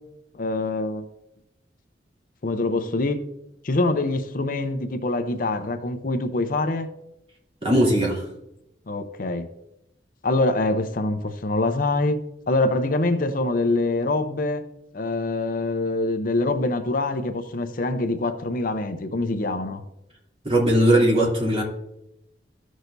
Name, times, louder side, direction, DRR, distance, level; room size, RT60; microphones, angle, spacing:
voice 1, 0.3-1.1 2.4-3.2 3.6-6.9 8.9-9.5 10.2-14.6 14.9-19.8, left 2 dB, 50° left, 8 dB, 0.6 m, -24 dB
voice 2, 7.6-8.2 20.4-21.6, right 1 dB, 35° right, -4 dB, 2.9 m, -19 dB
14.0 x 6.3 x 2.6 m, 0.84 s
head